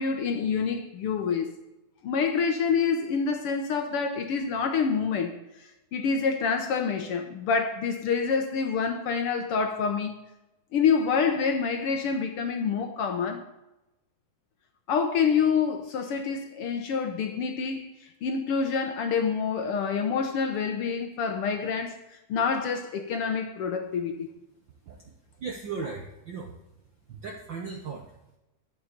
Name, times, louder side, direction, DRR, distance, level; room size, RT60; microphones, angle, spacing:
voice 1, 0.0-1.5 2.0-5.3 5.6-10.2 10.7-13.4 14.9-24.3, left 6 dB, 70° left, 1.4 m, -27 dB
voice 2, 25.4-26.6 27.1-28.4, right 4 dB, 75° right, 1.0 m, -37 dB
11.5 x 6.9 x 6.7 m
omnidirectional pair, 3.7 m